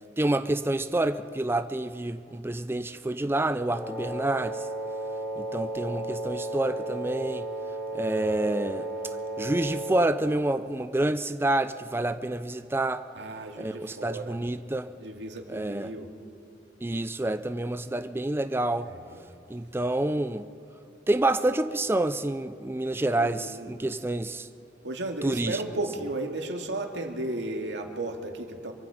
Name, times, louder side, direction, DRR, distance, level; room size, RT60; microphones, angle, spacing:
voice 1, 0.2-4.7 5.4-7.5 7.9-8.9 9.4-13.0 13.6-14.9 15.5-15.9 16.8-18.9 19.5-20.5 21.1-24.5 25.2-25.6, right 2 dB, 15° right, 11 dB, 0.4 m, -28 dB
Wind instrument woodwind instrument, 3.7-10.2, right 2 dB, 10° left, 3.9 m, -34 dB
voice 2, 8.0-8.4 13.1-14.4 15.0-16.1 18.8-19.3 23.2-23.7 24.8-28.7, right 2 dB, 85° right, 3 dB, 2.2 m, -35 dB
24.5 x 24.0 x 5.1 m, 2.8 s
head